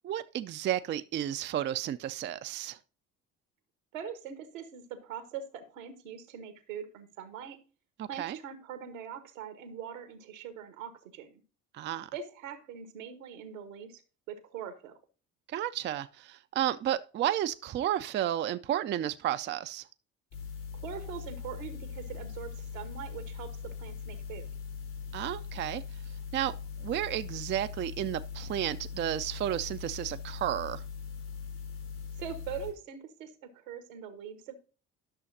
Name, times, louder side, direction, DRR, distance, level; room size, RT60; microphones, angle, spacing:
voice 1, 0.0-2.8 8.0-8.4 11.7-12.1 15.5-19.8 25.1-25.8 26.3-26.5 26.8-30.8, right 11 dB, 30° right, 0.4 m, -32 dB
voice 2, 3.9-7.6 8.1-11.4 12.1-14.0 14.3-15.0 20.7-24.5 32.2-34.5, right 8 dB, 80° right, 1.3 m, -42 dB
sound 1, 20.3-32.7, left 6 dB, 70° left, 4.6 m, -41 dB
11.5 x 6.3 x 2.7 m
hypercardioid pair, 55°, 39 cm